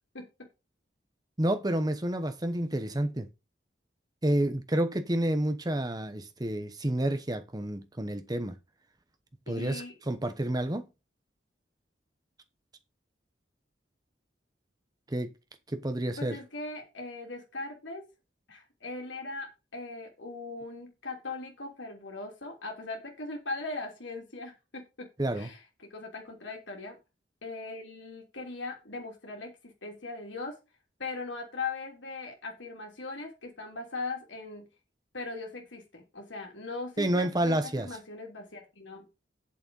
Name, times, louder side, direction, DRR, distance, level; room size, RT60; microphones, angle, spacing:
voice 1, 1.4-3.3 4.2-8.5 9.5-10.9 15.1-15.3 15.7-16.4 25.2-25.5 37.0-37.9, right 1 dB, 20° right, 0.9 m, -29 dB
voice 2, 9.5-9.9 16.2-18.0 18.5-19.5 19.7-25.1 25.3-25.6 25.9-27.0 27.4-30.6 31.0-34.7 35.1-39.0, left 3 dB, 90° left, 3.2 m, -39 dB
8.8 x 7.2 x 5.4 m
head